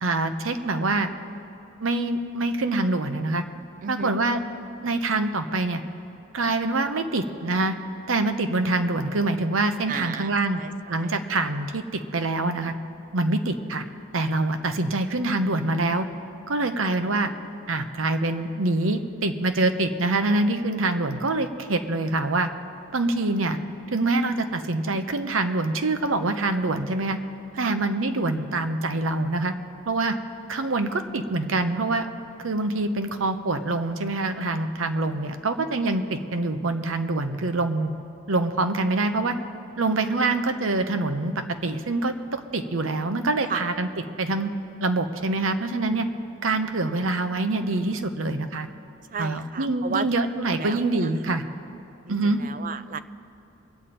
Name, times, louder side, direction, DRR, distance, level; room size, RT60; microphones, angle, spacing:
voice 1, 0.0-1.1 1.8-3.4 3.9-4.4 4.8-5.8 6.3-7.8 8.1-10.6 10.9-12.7 13.1-13.8 14.1-16.1 16.5-17.3 17.7-22.5 22.9-23.6 23.9-27.2 27.6-29.5 29.9-30.2 30.5-32.1 32.4-37.9 38.3-39.4 39.8-41.3 41.6-43.9 44.2-44.5 44.8-46.1 46.4-48.7 49.2-51.4 52.1-52.4, right 2 dB, 85° right, 8 dB, 0.8 m, -25 dB
voice 2, 3.8-4.2 9.9-11.2 27.6-27.7 43.5-43.6 49.1-50.1 50.6-51.1 52.1-53.0, right 5 dB, 40° right, 13 dB, 0.4 m, -34 dB
23.5 x 8.9 x 4.3 m, 2.9 s
head